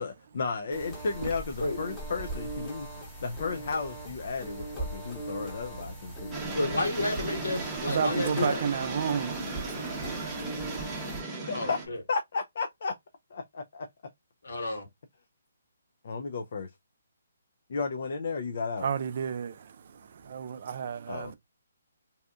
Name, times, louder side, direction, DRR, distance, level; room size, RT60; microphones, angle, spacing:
voice 1, 0.0-6.8 11.5-11.8 12.1-13.0 13.3-13.9 16.0-16.7 17.7-18.9 21.1-21.3, left 4 dB, 55° left, 0.4 m, -34 dB
sound 1, 0.7-11.2, right 1 dB, 10° left, 1.0 m, -39 dB
sound 2, 6.3-11.9, right 3 dB, 10° right, 0.8 m, -36 dB
voice 2, 6.5-8.6 11.5-12.0 14.4-14.9, left 2 dB, 80° left, 1.4 m, -31 dB
voice 3, 7.8-10.4 18.8-19.6 20.2-21.3, right 7 dB, 50° right, 0.4 m, -31 dB
2.7 x 2.3 x 2.3 m
hypercardioid pair, 155°, 0 cm